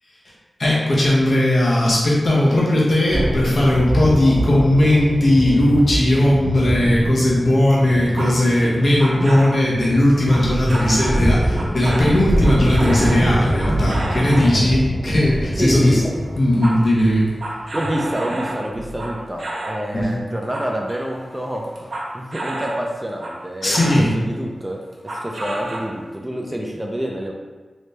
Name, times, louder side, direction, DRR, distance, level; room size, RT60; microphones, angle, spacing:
voice 1, 0.6-16.0 16.4-17.3 19.9-20.2 23.6-24.1, left 1 dB, 60° left, -6 dB, 1.1 m, -17 dB
sound 1, 3.1-19.3, equal, 5° left, 0.9 m, -24 dB
sound 2, 7.9-9.6 10.3-11.2 11.6-14.6 15.7-15.9 16.2-19.8 20.3-22.8 23.2-24.0 24.9-26.2, right 1 dB, 65° right, 0.7 m, -30 dB
voice 2, 15.6-16.0 17.7-23.8 24.1-24.8 25.2-27.3, equal, 15° right, 0 dB, 0.5 m, -27 dB
3.2 x 2.7 x 3.3 m, 1.3 s
cardioid pair, 60°, 0 cm